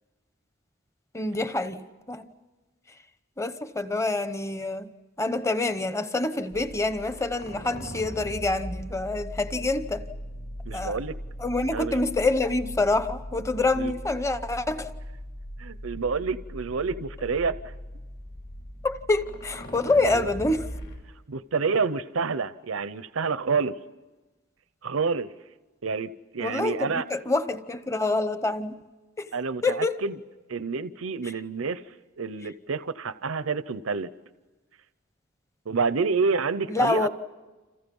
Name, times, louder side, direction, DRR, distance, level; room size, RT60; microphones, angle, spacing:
voice 1, 1.1-2.3 3.4-4.9 5.2-10.0 10.7-11.0 11.4-14.9 18.8-20.7 26.4-28.7 29.2-29.3 29.6-30.0 36.7-37.1, left 2 dB, 15° left, 1.0 m, -26 dB
sound 1, 6.5-21.0, equal, 55° left, 5.8 m, -39 dB
voice 2, 10.6-11.1 11.7-12.0 13.8-13.9 15.6-17.7 20.0-20.3 21.3-23.7 24.8-25.3 25.8-27.0 29.3-30.1 30.5-31.8 32.2-34.1 35.7-37.1, right 4 dB, 80° right, 0.7 m, -28 dB
30.0 x 27.5 x 5.4 m
head